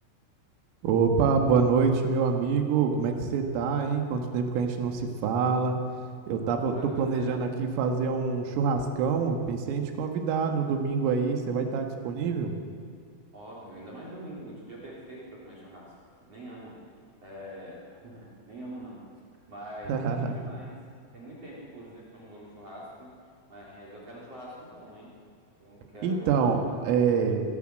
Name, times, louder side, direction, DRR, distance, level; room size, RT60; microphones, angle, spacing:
voice 1, 0.8-5.8 6.3-12.5 19.9-20.3 26.0-26.6 26.9-27.4, right 5 dB, 90° right, 5 dB, 4.4 m, -26 dB
voice 2, 6.7-7.4 13.3-16.8 17.2-19.1 19.5-20.7 21.1-23.2 23.5-25.2 25.6-26.8, right 1 dB, 35° right, -5 dB, 3.8 m, -44 dB
23.5 x 15.0 x 7.7 m, 2.1 s
omnidirectional pair, 5.8 m